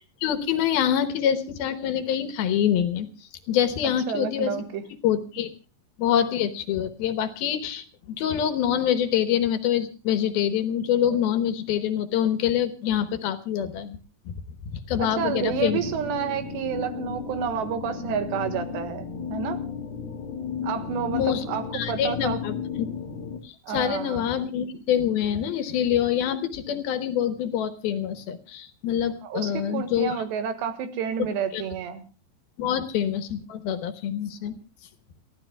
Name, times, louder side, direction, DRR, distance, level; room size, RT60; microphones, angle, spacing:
voice 1, 0.2-3.1 3.5-4.5 5.0-5.5 6.0-14.0 14.3-14.4 14.7-15.8 21.1-21.4 21.7-22.9 23.4-30.2 31.5-31.6 32.6-34.5, left 9 dB, 70° left, 10 dB, 2.8 m, -25 dB
voice 2, 4.1-4.9 15.0-19.6 20.6-22.4 23.6-24.3 29.2-32.0, right 7 dB, 80° right, 9 dB, 3.8 m, -30 dB
sound 1, 15.1-23.4, left 6 dB, 45° left, 1.7 m, -34 dB
30.0 x 14.5 x 2.3 m, 0.32 s
omnidirectional pair, 4.9 m